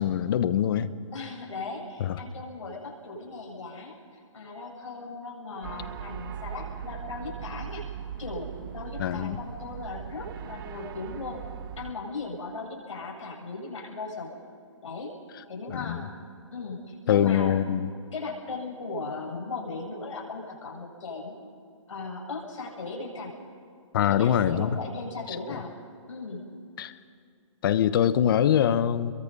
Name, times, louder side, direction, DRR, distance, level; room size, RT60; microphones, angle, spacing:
voice 1, 0.0-0.9 2.0-2.2 9.0-9.4 15.7-16.0 17.1-17.9 23.9-24.8 25.3-25.4 26.8-26.9 27.6-29.1, left 10 dB, 45° left, 14 dB, 1.1 m, -23 dB
voice 2, 1.1-7.8 8.2-11.4 11.8-14.4 14.8-15.1 15.5-16.1 16.5-17.5 18.1-21.5 21.9-23.3 24.0-25.7 26.1-26.4, left 3 dB, 70° left, -2 dB, 7.8 m, -37 dB
sound 1, 5.6-11.9, right 8 dB, 40° right, 1.4 m, -39 dB
28.5 x 23.0 x 5.5 m, 2.4 s
hypercardioid pair, 155°, 16 cm